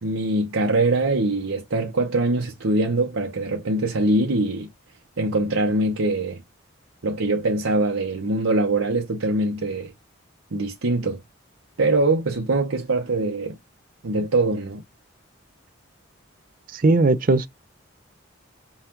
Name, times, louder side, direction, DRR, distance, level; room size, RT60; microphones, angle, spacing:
voice 1, 0.0-4.7 5.2-6.4 7.0-9.9 10.5-11.2 11.8-13.6 14.0-14.8, right 2 dB, 85° right, 0.8 m, -23 dB
voice 2, 16.7-17.5, right 2 dB, 40° right, 0.5 m, -18 dB
5.6 x 2.3 x 3.0 m
head